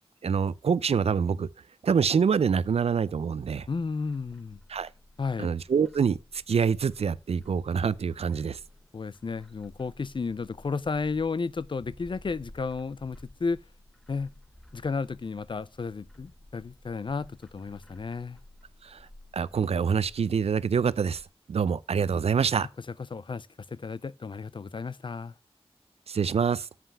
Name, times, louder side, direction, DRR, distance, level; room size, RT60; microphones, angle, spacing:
voice 1, 0.2-1.5 1.8-3.7 4.7-4.9 5.4-8.6 18.8-19.1 19.3-21.2 21.5-22.7 26.1-26.7, right 6 dB, 85° right, 0.4 m, -26 dB
Bird, 3.5-21.3, left 1 dB, 5° left, 1.1 m, -54 dB
voice 2, 3.7-4.6 5.2-5.5 8.9-13.6 14.1-14.3 14.7-18.4 23.1-25.3, left 4 dB, 55° left, 0.4 m, -33 dB
7.5 x 5.6 x 5.5 m
wide cardioid pair, 50°, 10 cm